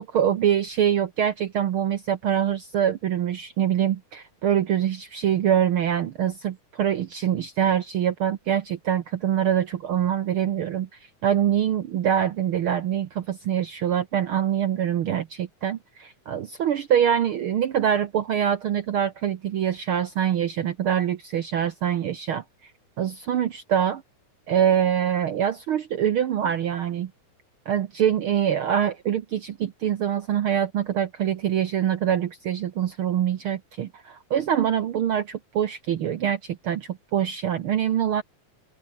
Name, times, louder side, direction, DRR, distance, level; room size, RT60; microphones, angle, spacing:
voice 1, 0.0-10.9 11.2-22.4 23.0-24.0 24.5-27.1 27.7-38.2, right 9 dB, 65° right, 1.3 m, -24 dB
open air
omnidirectional pair, 3.5 m